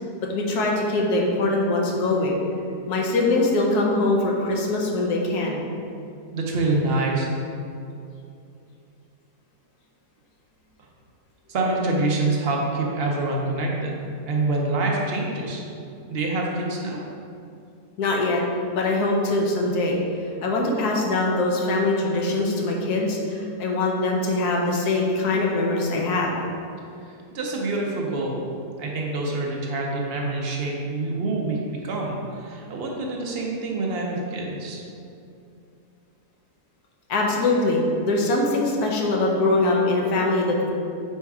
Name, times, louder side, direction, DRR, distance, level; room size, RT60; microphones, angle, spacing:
voice 1, 0.3-2.3 2.9-5.6 18.0-18.4 18.7-20.0 20.4-26.3 37.1-40.7, left 2 dB, 70° left, -1 dB, 1.3 m, -22 dB
voice 2, 6.3-7.3 11.5-15.7 16.1-17.0 27.3-28.5 28.8-34.8, right 2 dB, 50° right, -1 dB, 0.7 m, -26 dB
4.5 x 4.3 x 4.7 m, 2.5 s
omnidirectional pair, 1.8 m